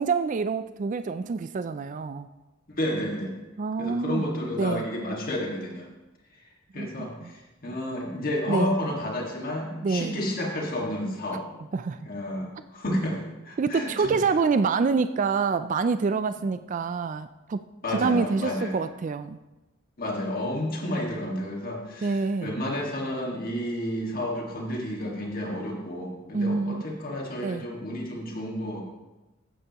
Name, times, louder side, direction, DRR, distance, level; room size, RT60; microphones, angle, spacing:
voice 1, 0.0-2.3 3.6-4.3 4.6-4.9 6.7-7.3 8.5-8.7 9.8-10.2 11.7-12.0 13.6-17.6 17.9-19.4 22.0-22.6 26.3-26.8 27.4-27.7, right 4 dB, 40° right, 11 dB, 0.3 m, -26 dB
voice 2, 2.8-3.4 3.8-5.9 6.7-11.4 12.0-13.2 13.4-14.2 17.8-18.8 20.0-28.8, left 1 dB, 45° left, -1 dB, 1.9 m, -31 dB
15.0 x 9.1 x 3.0 m, 1.0 s
head